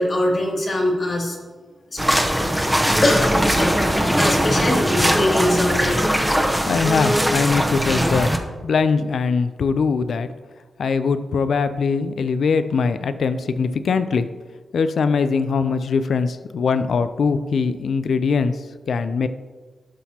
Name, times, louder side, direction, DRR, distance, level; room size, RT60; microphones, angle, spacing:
voice 1, 0.0-1.4 1.9-2.0 2.5-6.0, left 1 dB, 45° left, -2 dB, 2.5 m, -23 dB
sound 1, 2.0-8.4, equal, ahead, 0.8 m, -20 dB
voice 2, 6.7-8.3 8.6-10.3 10.8-14.3 14.7-18.6 18.9-19.3, left 5 dB, 75° left, 12 dB, 0.4 m, -21 dB
12.5 x 5.8 x 2.9 m, 1.4 s
cardioid pair, 90°, 0 cm